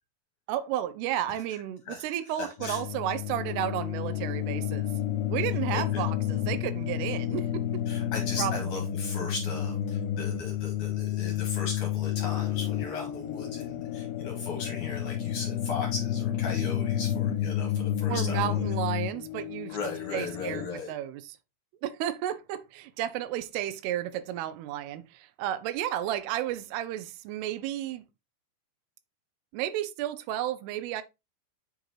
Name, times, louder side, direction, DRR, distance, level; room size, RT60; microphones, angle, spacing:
voice 1, 0.5-4.9 5.3-7.8 8.4-8.6 18.1-19.8 20.1-21.4 21.8-28.0 29.5-31.0, right 12 dB, 90° right, 2.6 m, -32 dB
voice 2, 2.4-2.8 5.7-6.0 7.9-18.6 19.7-20.9, left 4 dB, 65° left, 2.3 m, -37 dB
sound 1, 2.6-20.7, left 11 dB, 80° left, 2.4 m, -31 dB
7.9 x 3.9 x 3.1 m
omnidirectional pair, 4.6 m